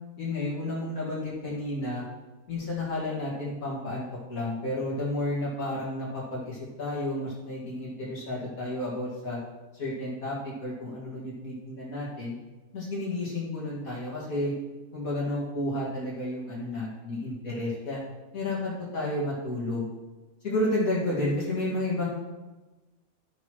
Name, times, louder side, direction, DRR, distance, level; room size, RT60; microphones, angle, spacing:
voice 1, 0.2-2.0 2.5-4.0 4.3-9.4 9.7-12.4 12.7-14.5 14.9-18.0 18.3-19.9 20.4-22.1, left 1 dB, 90° left, -7 dB, 2.4 m, -31 dB
12.5 x 6.3 x 3.1 m, 1.2 s
omnidirectional pair, 1.4 m